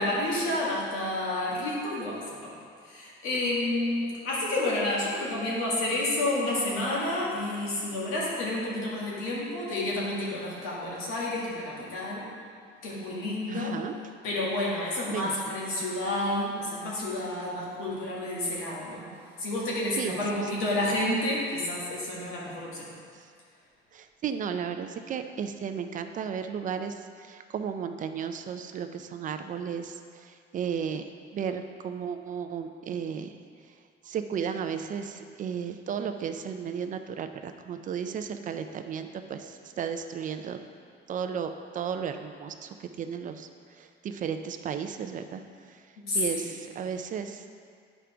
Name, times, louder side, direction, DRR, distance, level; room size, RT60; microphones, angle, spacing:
voice 1, 0.0-2.6 2.8-12.3 12.8-13.8 14.2-19.1 19.4-22.9 46.0-46.5, left 1 dB, 90° left, -5 dB, 1.9 m, -30 dB
voice 2, 13.5-13.9 15.1-15.4 20.0-20.2 23.9-31.0 31.3-33.4 34.0-40.6 41.1-43.5 43.7-45.4 45.7-45.8 46.1-47.5, right 7 dB, 40° right, 7 dB, 0.4 m, -34 dB
9.5 x 5.0 x 3.4 m, 2.2 s
cardioid pair, 145°, 21 cm